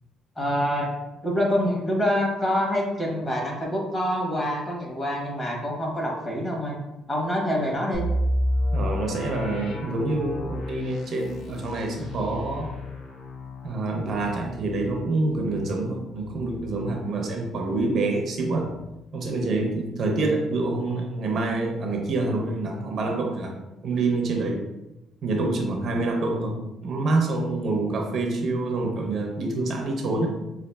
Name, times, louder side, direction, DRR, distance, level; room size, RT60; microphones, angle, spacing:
voice 1, 0.4-0.9 1.2-6.8 7.1-8.0, equal, 20° left, -3 dB, 0.8 m, -26 dB
sound 1, 7.9-17.7 18.0-18.1 18.6-18.9, left 1 dB, 60° left, 0.5 m, -31 dB
voice 2, 8.7-12.7 13.6-18.7 19.1-23.6 23.8-24.7 25.2-30.4, right 2 dB, 40° right, 2 dB, 0.4 m, -26 dB
5.0 x 2.3 x 2.2 m, 0.96 s
cardioid pair, 180°, 0 cm